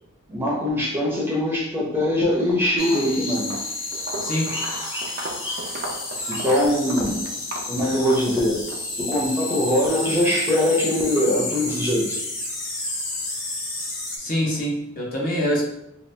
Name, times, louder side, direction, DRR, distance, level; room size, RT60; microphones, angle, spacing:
voice 1, 0.3-3.6 4.1-5.9 6.2-7.2 7.7-8.6 9.0-12.2, left 1 dB, 10° right, -5 dB, 0.7 m, -23 dB
Walk footsteps, 2.2-2.5 2.8-8.8, right 2 dB, 55° right, 0.5 m, -36 dB
sound 1, 2.8-14.2, left 2 dB, 85° left, 0.8 m, -31 dB
voice 2, 14.2-15.6, equal, 45° left, -3 dB, 0.8 m, -24 dB
2.9 x 2.4 x 3.2 m, 0.82 s
head